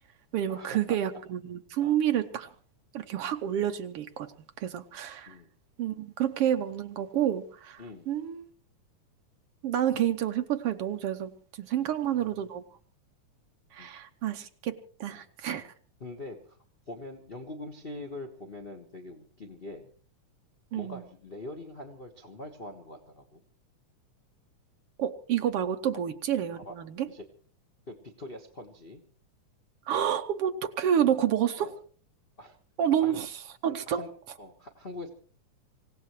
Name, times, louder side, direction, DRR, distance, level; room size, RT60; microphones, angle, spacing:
voice 1, 0.3-2.5 2.9-4.3 4.6-5.3 5.8-8.5 9.6-11.3 11.6-12.6 13.7-15.7 20.7-21.0 25.0-27.1 29.9-31.7 32.8-33.3 33.6-34.1, right 10 dB, 70° right, 7 dB, 1.4 m, -29 dB
voice 2, 7.8-8.1 11.8-12.0 13.8-13.9 15.1-15.2 16.0-16.6 16.9-19.9 20.7-23.4 26.6-26.7 27.1-27.2 27.9-29.0 31.6-31.7 32.4-32.6 33.0-33.2 33.9-34.1 34.4-35.1, left 2 dB, 35° left, 3 dB, 0.8 m, -43 dB
26.5 x 17.0 x 3.1 m, 0.43 s
omnidirectional pair, 3.6 m